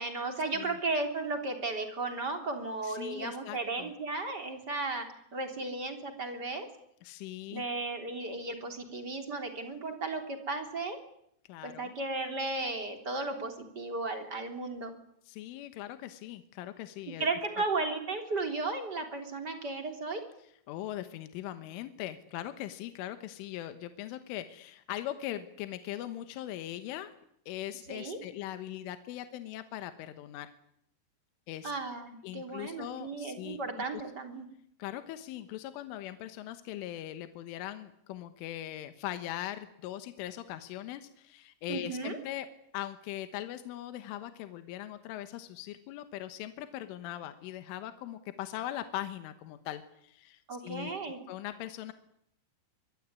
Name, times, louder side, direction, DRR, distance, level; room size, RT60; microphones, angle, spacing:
voice 1, 0.0-6.7 7.5-11.0 11.6-14.9 17.2-20.3 27.9-28.2 31.6-34.5 41.7-42.2 50.5-51.2, right 3 dB, 25° right, 5 dB, 3.2 m, -35 dB
voice 2, 2.8-3.9 7.0-7.7 11.5-11.9 15.3-17.3 20.7-27.1 27.5-30.5 31.5-31.7 32.2-34.0 34.8-42.5 42.7-51.0 51.3-51.9, left 13 dB, 75° left, 10 dB, 3.6 m, -40 dB
25.0 x 22.0 x 9.7 m, 0.71 s
omnidirectional pair, 5.9 m